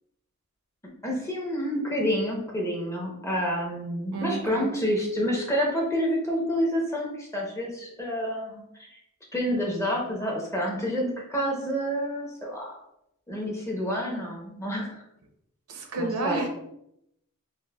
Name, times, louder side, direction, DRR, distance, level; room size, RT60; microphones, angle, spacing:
voice 1, 1.0-9.0 9.3-12.7 13.3-15.0 16.0-16.4, equal, 15° left, -2 dB, 0.7 m, -28 dB
voice 2, 4.1-4.7 15.7-16.5, right 3 dB, 80° right, 3 dB, 0.6 m, -30 dB
5.4 x 2.1 x 2.2 m, 0.79 s
head